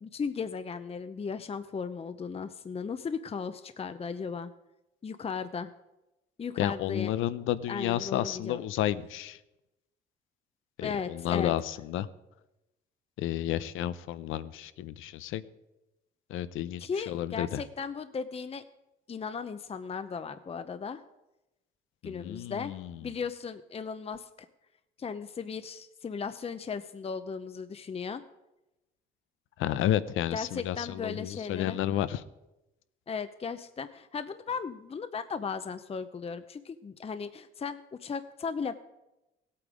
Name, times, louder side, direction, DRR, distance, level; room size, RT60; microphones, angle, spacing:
voice 1, 0.0-4.5 5.0-5.7 6.4-7.1 7.7-8.6 10.8-11.5 16.8-18.6 19.1-21.0 22.0-22.7 23.0-24.3 25.0-28.2 30.3-31.8 33.1-38.7, left 5 dB, 30° left, 11 dB, 0.7 m, -36 dB
voice 2, 6.6-9.4 10.8-12.1 13.2-15.4 16.3-17.6 22.0-22.9 29.6-32.2, left 12 dB, 90° left, 15 dB, 0.6 m, -31 dB
17.0 x 8.6 x 5.0 m, 0.96 s
cardioid pair, 90°, 20 cm